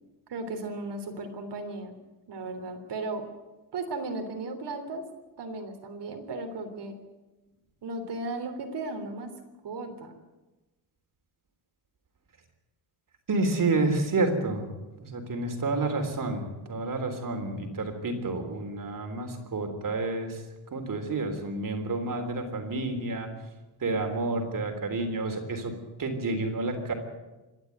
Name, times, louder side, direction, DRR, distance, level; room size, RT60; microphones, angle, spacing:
voice 1, 0.3-1.9 2.3-3.2 3.7-5.0 5.4-6.9 7.8-9.3 9.6-10.1, right 2 dB, 75° right, 6 dB, 3.4 m, -35 dB
voice 2, 13.3-14.7 15.0-20.4 20.7-23.3 23.8-26.9, right 2 dB, 50° right, 5 dB, 3.6 m, -29 dB
26.5 x 11.0 x 9.4 m, 1.1 s
wide cardioid pair, 145°, 41 cm